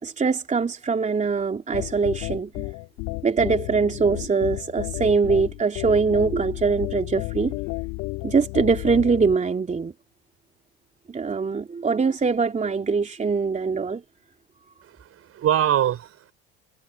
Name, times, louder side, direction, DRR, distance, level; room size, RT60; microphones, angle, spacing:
voice 1, 0.0-2.7 3.2-7.6 8.2-9.9 11.1-14.0, right 5 dB, 25° right, 3.2 m, -23 dB
sound 1, 1.7-9.4, left 25 dB, 65° left, 1.8 m, -32 dB
voice 2, 14.9-16.3, right 10 dB, 45° right, 5.2 m, -24 dB
hypercardioid pair, 75°, 31 cm